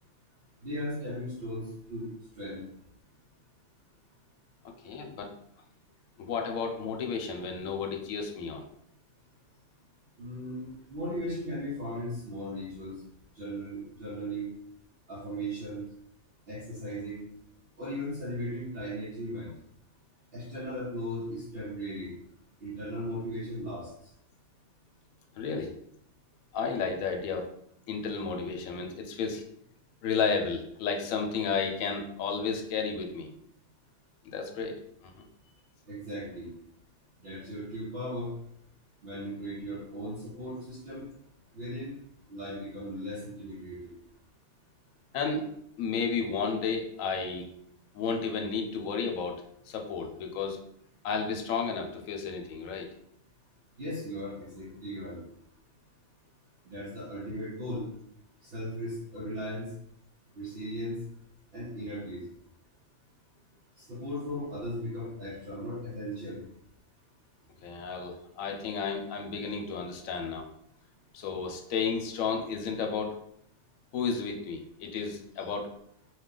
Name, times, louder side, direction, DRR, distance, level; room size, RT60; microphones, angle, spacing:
voice 1, 0.6-2.1 2.4-2.6 10.2-12.9 13.3-14.5 15.1-15.8 16.5-17.2 17.8-19.5 20.3-22.1 22.6-23.9 35.9-36.5 37.2-38.3 39.0-41.0 41.5-41.9 42.3-44.0 53.8-55.2 56.7-57.9 58.4-59.7 60.4-61.0 61.5-62.2 63.8-66.4, equal, 55° right, -6 dB, 0.9 m, -37 dB
voice 2, 4.6-5.3 6.2-8.6 25.4-25.7 26.5-27.4 27.9-29.4 30.0-33.3 34.3-35.2 45.1-45.4 45.8-47.5 47.9-50.6 51.0-52.9 67.6-70.5 71.1-73.2 73.9-75.7, left 5 dB, 80° left, 3 dB, 1.0 m, -32 dB
2.8 x 2.4 x 3.7 m, 0.71 s
omnidirectional pair, 1.4 m